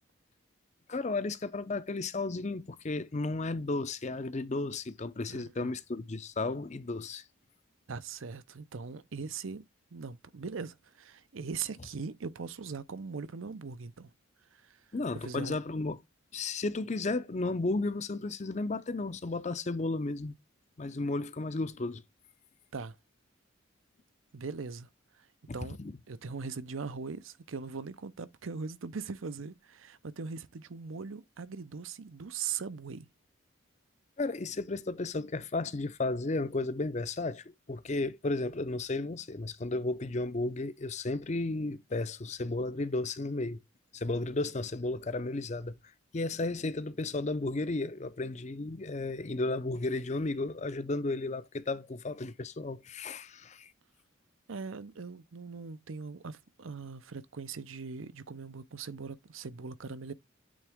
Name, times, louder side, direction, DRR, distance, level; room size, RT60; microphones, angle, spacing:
voice 1, 0.9-7.2 14.9-16.0 16.3-20.3 20.8-22.0 25.5-25.9 34.2-43.6 43.9-45.8 46.1-53.7, left 2 dB, 35° left, 0.5 m, -33 dB
voice 2, 5.3-5.7 7.9-9.6 9.9-14.1 14.5-14.8 15.2-15.6 22.7-23.0 24.3-24.9 25.2-25.3 25.5-25.8 26.1-33.1 54.5-60.1, right 5 dB, 75° right, 0.7 m, -40 dB
8.6 x 3.5 x 3.5 m
head